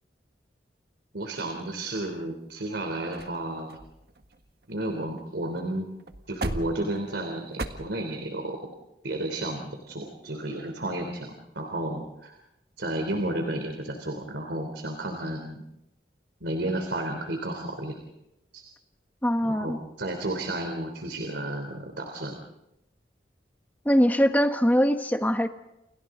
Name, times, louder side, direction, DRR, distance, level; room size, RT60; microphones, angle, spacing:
voice 1, 1.1-3.8 4.7-5.9 6.3-8.6 9.0-12.3 12.8-15.6 16.4-17.9 18.5-18.6 19.4-22.4, right 1 dB, 80° right, 4 dB, 3.4 m, -32 dB
sound 1, 1.4-2.2 2.8-2.9 3.1-3.4 3.7-5.3 5.5-5.7 6.0-7.7, right 1 dB, 60° right, 1.6 m, -37 dB
voice 2, 19.2-19.8 23.8-25.5, equal, 10° left, 7 dB, 1.3 m, -22 dB
30.0 x 29.5 x 3.9 m, 0.89 s
head